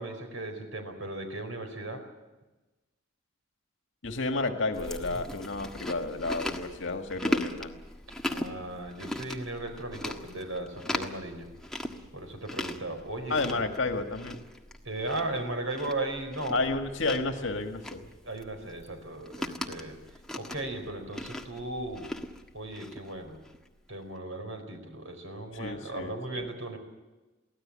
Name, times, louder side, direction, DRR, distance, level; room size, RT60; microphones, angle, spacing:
voice 1, 0.0-2.0 8.2-11.5 12.1-13.6 14.8-16.6 18.2-20.0 20.3-22.1 22.5-23.4 23.9-26.8, right 2 dB, 85° right, 6 dB, 4.7 m, -36 dB
voice 2, 4.0-7.8 13.3-14.4 16.5-18.1 25.5-26.5, left 3 dB, 70° left, 5 dB, 1.9 m, -31 dB
Chewing mastication, 4.7-23.7, left 1 dB, 5° left, 1.5 m, -39 dB
23.5 x 16.5 x 8.8 m, 1.1 s
head